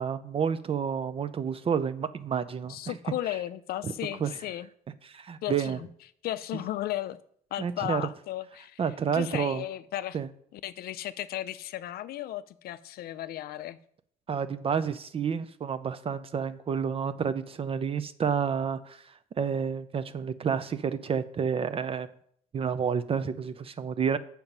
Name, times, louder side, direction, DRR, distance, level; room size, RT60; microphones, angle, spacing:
voice 1, 0.0-3.0 3.8-3.9 4.2-4.4 5.0-5.8 6.5-6.6 7.6-8.0 8.8-9.6 10.1-10.3 14.3-22.1 22.5-24.2, right 7 dB, 35° right, 12 dB, 0.5 m, -30 dB
voice 2, 2.7-4.7 5.4-5.9 6.2-7.2 7.5-8.8 9.1-10.2 10.5-13.8, left 13 dB, 65° left, 15 dB, 0.5 m, -35 dB
7.0 x 5.9 x 5.3 m, 0.65 s
cardioid pair, 110°, 17 cm